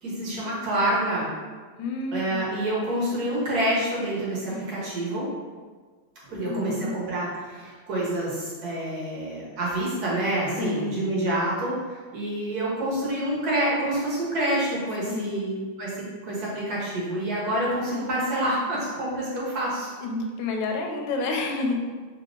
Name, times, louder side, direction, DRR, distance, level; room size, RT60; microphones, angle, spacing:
voice 1, 0.0-1.3 2.1-5.3 6.3-19.9, right 1 dB, 55° right, -6 dB, 1.6 m, -27 dB
voice 2, 1.8-2.6 4.5-4.6 6.5-6.9 10.6-11.0 15.1-15.5 17.9-18.1 20.0-21.7, left 3 dB, 80° left, 2 dB, 1.2 m, -29 dB
3.7 x 2.8 x 3.6 m, 1.4 s
omnidirectional pair, 2.1 m